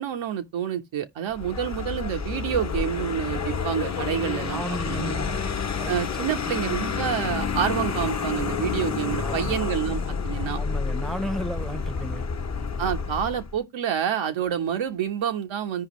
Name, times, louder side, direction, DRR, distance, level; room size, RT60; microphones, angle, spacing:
voice 1, 0.0-5.1 5.9-10.6 12.8-15.9, right 9 dB, 80° right, 1.0 m, -28 dB
Vehicle, 1.3-13.6, left 5 dB, 35° left, 1.0 m, -29 dB
voice 2, 4.5-5.4 5.8-5.9 6.4-6.5 9.2-9.6 10.6-12.3, equal, ahead, 0.8 m, -33 dB
sound 1, 4.7-7.2, left 8 dB, 70° left, 0.8 m, -43 dB
14.0 x 5.0 x 3.1 m
supercardioid pair, 50°, 46 cm